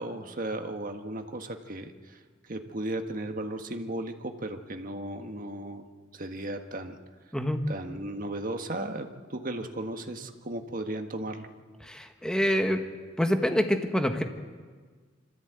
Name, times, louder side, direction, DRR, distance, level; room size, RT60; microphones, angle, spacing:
voice 1, 0.0-5.8 6.1-7.0 7.7-11.5, right 1 dB, 45° right, 5 dB, 1.6 m, -35 dB
voice 2, 7.3-7.7 11.8-12.9 13.2-14.2, equal, 5° left, 5 dB, 1.4 m, -26 dB
25.5 x 14.0 x 8.3 m, 1.5 s
head